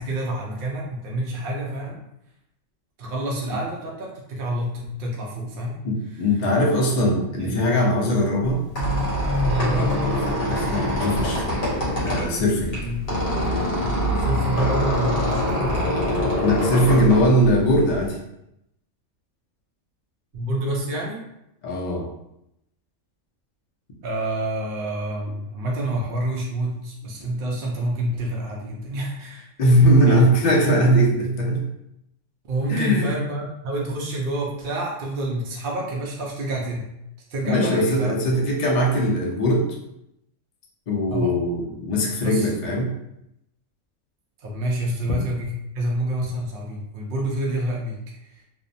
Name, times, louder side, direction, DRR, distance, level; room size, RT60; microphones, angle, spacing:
voice 1, 0.0-2.0 3.0-5.8 7.2-7.7 9.4-10.0 12.7-13.1 14.2-16.0 20.3-21.2 24.0-29.4 30.0-30.2 32.5-36.8 37.3-38.1 41.1-41.3 42.2-42.5 44.4-48.0, right 1 dB, 65° right, -2 dB, 0.5 m, -28 dB
voice 2, 5.8-8.6 10.5-11.6 12.0-12.8 16.4-18.2 21.6-22.1 29.6-31.6 32.7-33.1 37.4-39.7 40.9-42.9, equal, 70° left, -2 dB, 0.4 m, -20 dB
Squeak, 8.4-18.1, equal, 50° left, 0.8 m, -24 dB
2.6 x 2.0 x 2.6 m, 0.83 s
omnidirectional pair, 1.4 m